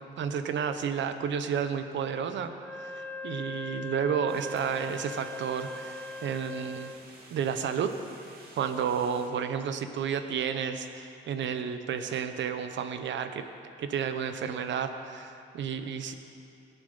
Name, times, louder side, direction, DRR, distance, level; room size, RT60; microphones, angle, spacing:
voice 1, 0.0-6.9 7.3-7.9 8.6-13.4 13.8-16.1, right 7 dB, 70° right, 8 dB, 1.0 m, -31 dB
Wind instrument woodwind instrument, 2.6-7.1, left 2 dB, 10° left, 0.6 m, -40 dB
sound 1, 4.3-9.3, right 2 dB, 50° right, 2.7 m, -52 dB
20.5 x 7.0 x 5.6 m, 2.7 s
cardioid pair, 90°, 20 cm